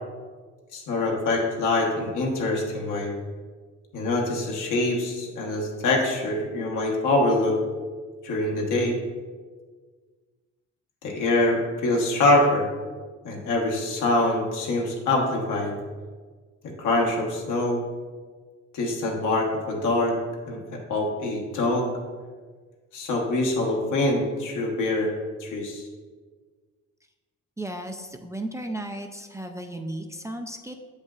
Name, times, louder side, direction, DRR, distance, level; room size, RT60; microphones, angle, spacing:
voice 1, 0.7-3.1 3.9-7.6 8.2-9.0 11.0-12.7 13.2-15.7 16.8-17.8 18.7-20.2 20.5-20.6 20.9-21.9 22.9-25.1 25.4-25.9, left 2 dB, 80° left, -1 dB, 1.2 m, -24 dB
voice 2, 27.6-30.7, right 1 dB, 10° right, 4 dB, 0.3 m, -35 dB
7.1 x 5.5 x 2.4 m, 1.5 s
cardioid pair, 90°, 30 cm